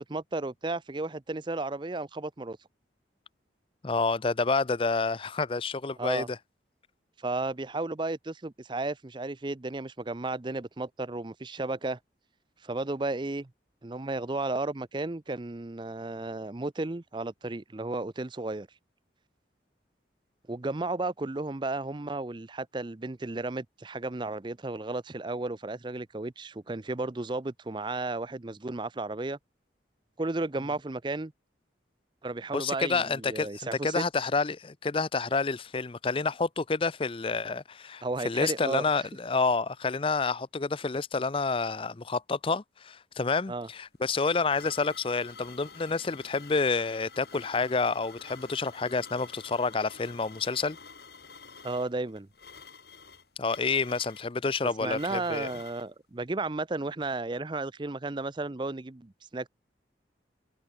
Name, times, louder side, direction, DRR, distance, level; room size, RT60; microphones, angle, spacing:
voice 1, 0.0-2.6 6.0-6.3 7.2-12.0 12.6-13.5 13.8-18.7 20.5-29.4 30.2-31.3 32.2-34.0 38.0-39.1 43.5-43.7 51.6-52.3 54.8-59.5, right 2 dB, 25° right, 0.6 m, -33 dB
voice 2, 3.8-6.4 32.5-50.8 53.4-55.5, left 4 dB, 30° left, 0.5 m, -29 dB
sound 1, 43.7-55.9, left 5 dB, 60° left, 3.0 m, -50 dB
head